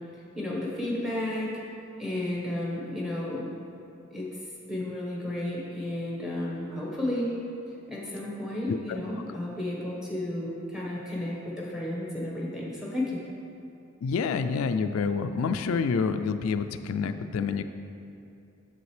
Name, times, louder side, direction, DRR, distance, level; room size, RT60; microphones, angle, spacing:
voice 1, 0.3-1.5 2.0-3.5 4.1-4.3 4.7-7.3 7.9-13.2, left 1 dB, 5° right, -5 dB, 1.2 m, -32 dB
voice 2, 8.7-9.0 14.0-17.6, left 5 dB, 90° left, 9 dB, 0.3 m, -28 dB
7.8 x 7.1 x 3.3 m, 2.6 s
head